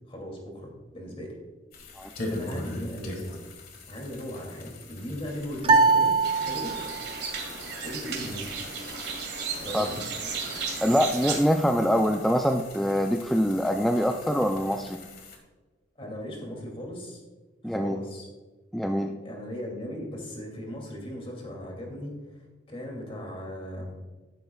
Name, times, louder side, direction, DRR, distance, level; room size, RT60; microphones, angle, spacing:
voice 1, 0.1-1.4 2.3-3.2 3.9-6.1 6.4-6.7 7.8-8.5 9.6-10.0 16.0-17.2 17.6-18.3 19.2-23.9, equal, 30° left, 0 dB, 2.5 m, -37 dB
sound 1, 1.7-15.4, left 2 dB, 50° left, 1.7 m, -42 dB
sound 2, 5.6-7.1, right 4 dB, 30° right, 0.7 m, -22 dB
sound 3, 6.2-11.4, right 5 dB, 55° right, 2.2 m, -35 dB
voice 2, 10.8-15.0 17.6-18.0 18.7-19.1, equal, ahead, 3 dB, 0.4 m, -24 dB
12.0 x 11.0 x 2.3 m, 1.2 s
head